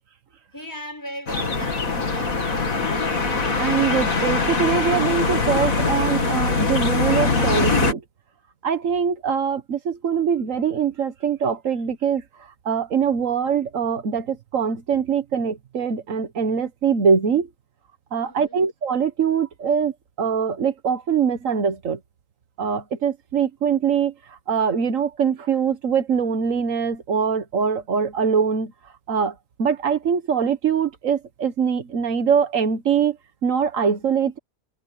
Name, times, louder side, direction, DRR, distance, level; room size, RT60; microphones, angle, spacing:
voice 1, 0.5-3.2 18.2-18.7, equal, 15° left, 6.2 m, -38 dB
sound 1, 1.3-7.9, left 3 dB, 85° left, 3.0 m, -22 dB
voice 2, 3.6-8.0 8.6-12.2 12.6-17.5 18.1-19.9 20.2-22.0 22.6-24.1 24.5-28.7 29.1-29.3 29.6-33.2 33.4-34.4, right 7 dB, 70° right, 1.7 m, -23 dB
omnidirectional pair, 1.4 m